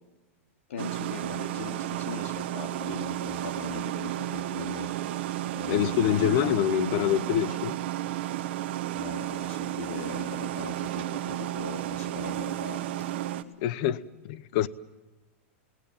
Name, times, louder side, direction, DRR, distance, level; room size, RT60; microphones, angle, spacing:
voice 1, 0.7-5.2 5.5-6.6 7.1-7.6 8.9-13.0 14.6-14.7, left 5 dB, 80° left, 2.6 m, -40 dB
sound 1, 0.8-13.4, right 13 dB, 55° right, 1.2 m, -32 dB
voice 2, 5.7-7.8 13.6-14.7, left 11 dB, 40° left, 0.7 m, -26 dB
29.0 x 19.0 x 7.1 m
supercardioid pair, 165°, 7 cm